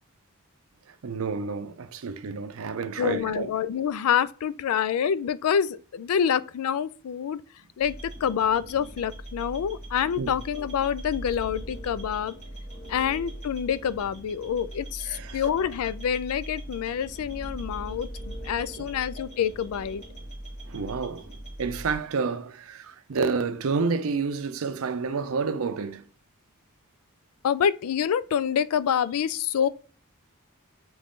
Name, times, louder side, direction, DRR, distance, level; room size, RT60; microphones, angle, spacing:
voice 1, 0.9-3.5 10.2-10.3 15.1-15.4 18.8-18.9 20.7-26.0, right 4 dB, 70° right, 0.5 m, -30 dB
voice 2, 3.0-7.4 7.8-7.9 8.2-12.3 12.9-20.0 27.4-29.7, left 8 dB, 80° left, 0.3 m, -27 dB
sound 1, 7.8-22.0, right 1 dB, 35° left, 1.9 m, -40 dB
3.6 x 3.1 x 3.8 m
head